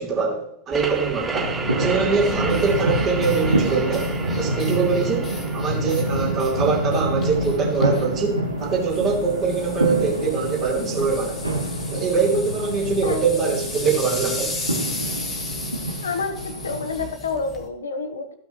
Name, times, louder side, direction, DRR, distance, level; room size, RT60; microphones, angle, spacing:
voice 1, 0.0-1.5 1.7-4.1 4.3-11.4 11.9-14.5, right 5 dB, 30° right, -2 dB, 2.8 m, -23 dB
sound 1, 0.7-10.1, right 4 dB, 15° right, 0.9 m, -32 dB
sound 2, 1.3-17.1, right 1 dB, 85° right, 1.0 m, -27 dB
sound 3, 2.1-17.7, left 3 dB, 20° left, 1.4 m, -36 dB
voice 2, 16.0-18.3, left 4 dB, 70° left, 10 dB, 1.0 m, -28 dB
14.0 x 5.8 x 3.0 m, 0.75 s
figure-of-eight pair, 90°, 0 cm